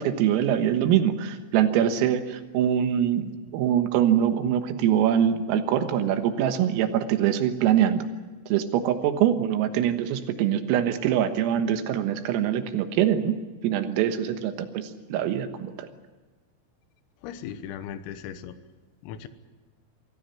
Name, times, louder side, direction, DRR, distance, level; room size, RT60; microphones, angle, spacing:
voice 1, 0.0-8.1 8.5-13.4 13.6-15.9, right 10 dB, 90° right, 8 dB, 4.0 m, -24 dB
voice 2, 17.2-18.6 19.0-19.3, left 9 dB, 85° left, 11 dB, 3.8 m, -37 dB
24.5 x 16.0 x 9.2 m, 1.3 s
omnidirectional pair, 5.9 m